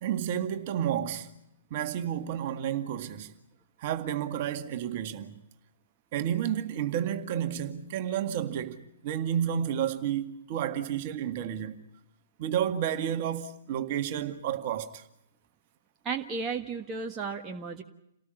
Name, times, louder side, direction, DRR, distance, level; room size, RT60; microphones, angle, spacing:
voice 1, 0.0-1.3 1.7-3.3 3.8-5.3 6.1-11.8 12.4-15.0, right 10 dB, 40° right, 2.0 m, -31 dB
voice 2, 16.0-17.8, right 5 dB, 20° right, 1.5 m, -34 dB
29.0 x 18.5 x 7.1 m
figure-of-eight pair, 115°, 0 cm